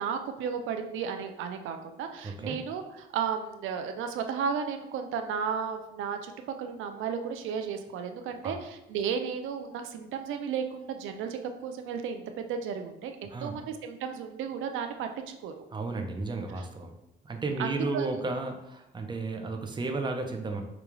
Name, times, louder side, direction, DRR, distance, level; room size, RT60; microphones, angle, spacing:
voice 1, 0.0-6.3 6.6-15.1 15.4-15.7 17.6-18.1, right 7 dB, 85° right, 6 dB, 0.4 m, -34 dB
voice 2, 2.2-2.6 8.4-8.5 13.3-13.5 15.7-16.9 17.2-20.6, right 3 dB, 25° right, 4 dB, 0.6 m, -33 dB
5.0 x 2.3 x 3.0 m, 0.89 s
cardioid pair, 90°, 20 cm